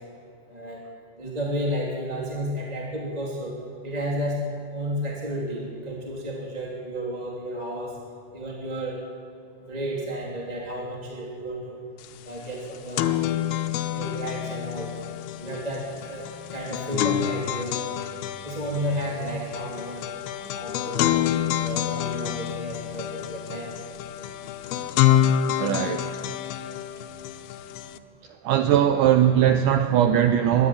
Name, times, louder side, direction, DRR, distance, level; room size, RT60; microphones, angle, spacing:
voice 1, 0.5-0.8 1.2-3.5 3.8-4.4 4.7-7.9 8.3-9.0 9.6-11.8 12.2-13.1 13.9-14.9 15.4-16.2 16.5-17.7 18.4-21.1 21.5-23.7, equal, 10° right, -3 dB, 2.4 m, -32 dB
sound 1, 12.0-12.1 12.4-28.0, left 11 dB, 80° left, 2.6 m, -27 dB
voice 2, 25.6-26.1 28.2-30.7, right 10 dB, 85° right, 7 dB, 1.8 m, -20 dB
22.5 x 13.5 x 8.7 m, 2.5 s
omnidirectional pair, 4.6 m